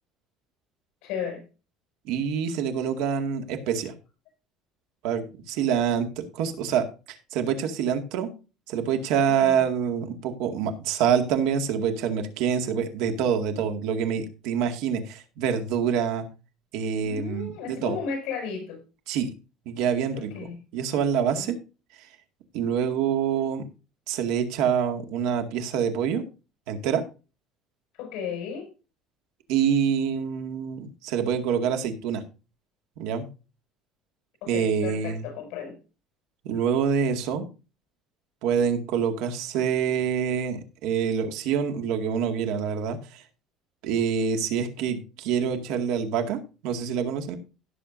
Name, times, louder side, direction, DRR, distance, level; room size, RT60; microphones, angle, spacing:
voice 1, 1.0-1.4 9.4-9.6 17.0-18.8 20.1-20.6 21.3-21.5 28.0-28.7 34.4-35.8, left 6 dB, 65° left, 4 dB, 6.4 m, -34 dB
voice 2, 2.1-3.9 5.0-6.1 6.3-8.3 8.7-16.3 16.7-18.0 19.1-19.3 19.7-20.3 20.7-21.5 22.5-23.6 24.1-26.2 26.7-27.0 29.5-32.2 33.0-33.3 34.5-35.3 36.4-37.5 38.4-43.2 43.8-47.4, right 7 dB, 70° right, 6 dB, 2.0 m, -26 dB
17.0 x 6.8 x 2.7 m, 0.32 s
cardioid pair, 170°, 0 cm